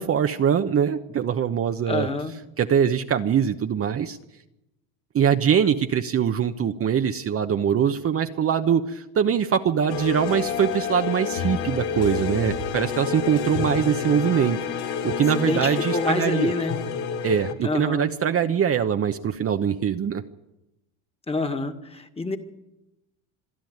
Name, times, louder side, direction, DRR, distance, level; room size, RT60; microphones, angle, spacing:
voice 1, 0.0-2.1 2.6-4.2 5.1-14.6 15.0-16.5 17.2-20.2, right 8 dB, 35° right, 6 dB, 1.0 m, -23 dB
voice 2, 1.9-2.3 15.3-16.8 17.6-18.1 21.3-22.4, left 2 dB, 15° left, 6 dB, 1.9 m, -27 dB
sound 1, 9.9-17.5, left 7 dB, 65° left, 2.1 m, -29 dB
26.5 x 10.5 x 9.4 m, 0.93 s
supercardioid pair, 100°, 41 cm